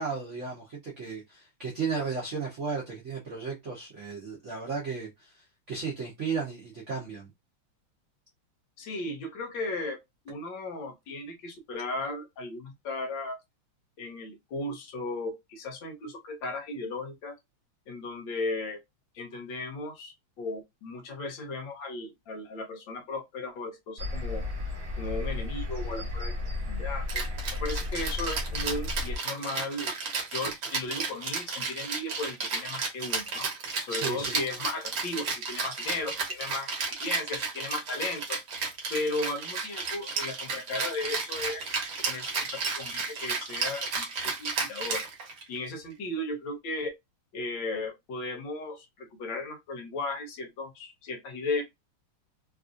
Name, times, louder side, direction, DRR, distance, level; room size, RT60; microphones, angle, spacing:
voice 1, 0.0-7.3 33.9-34.4, right 5 dB, 75° right, 0.6 m, -34 dB
voice 2, 8.8-10.0 10.2-13.4 14.0-17.4 17.9-18.8 19.1-24.5 25.0-26.3 26.7-27.2 27.6-29.9 30.3-33.5 33.8-36.7 37.0-38.4 38.9-41.8 42.1-44.1 44.4-45.0 45.5-46.9 47.3-51.6, left 2 dB, 70° left, 1.3 m, -35 dB
sound 1, 24.0-29.2, left 2 dB, 30° right, 1.2 m, -33 dB
Rattle (instrument), 27.1-45.6, right 4 dB, 60° right, 1.4 m, -33 dB
3.4 x 2.5 x 2.5 m
omnidirectional pair, 2.4 m